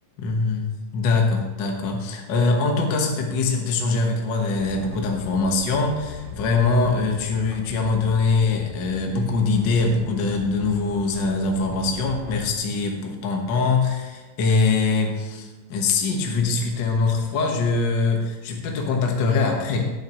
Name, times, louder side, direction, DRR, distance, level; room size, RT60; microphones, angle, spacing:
voice 1, 0.2-19.9, left 3 dB, 55° left, 1 dB, 1.3 m, -23 dB
sound 1, 4.5-12.5, left 2 dB, 20° left, 1.5 m, -39 dB
16.5 x 9.1 x 3.0 m, 1.3 s
omnidirectional pair, 3.7 m